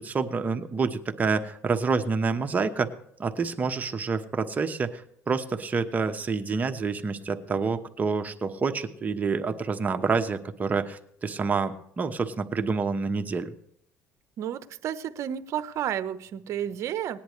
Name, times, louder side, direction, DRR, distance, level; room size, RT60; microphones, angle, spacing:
voice 1, 0.0-2.9 3.2-13.5, right 4 dB, 30° right, 6 dB, 1.2 m, -28 dB
voice 2, 14.4-17.2, right 10 dB, 60° right, 12 dB, 0.9 m, -31 dB
19.0 x 10.0 x 3.2 m, 0.69 s
cardioid pair, 105°, 6 cm